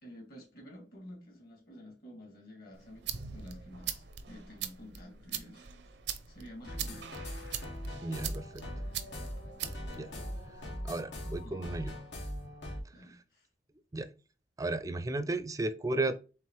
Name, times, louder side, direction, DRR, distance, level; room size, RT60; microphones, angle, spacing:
voice 1, 0.0-5.7 6.3-7.1 11.4-11.8 12.9-13.5, equal, 60° left, 2.2 m, -50 dB
sound 1, 2.7-10.8, right 9 dB, 70° right, 0.5 m, -42 dB
sound 2, 6.6-12.8, equal, 90° left, 1.4 m, -41 dB
voice 2, 8.0-8.6 9.9-10.1 10.8-11.9 13.9-14.1 14.6-16.1, right 2 dB, 20° right, 0.4 m, -34 dB
4.6 x 3.6 x 3.0 m
head